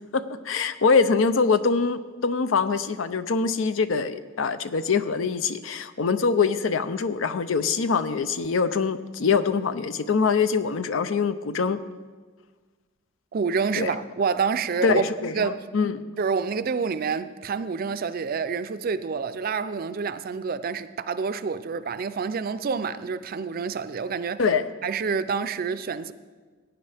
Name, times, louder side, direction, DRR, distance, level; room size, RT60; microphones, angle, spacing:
voice 1, 0.1-11.8 13.8-13.9 14.8-16.0 24.4-24.7, left 5 dB, 85° left, 0.6 m, -24 dB
voice 2, 13.3-15.6 16.2-24.4 24.8-26.1, right 5 dB, 50° right, 0.4 m, -28 dB
17.5 x 9.0 x 3.4 m
head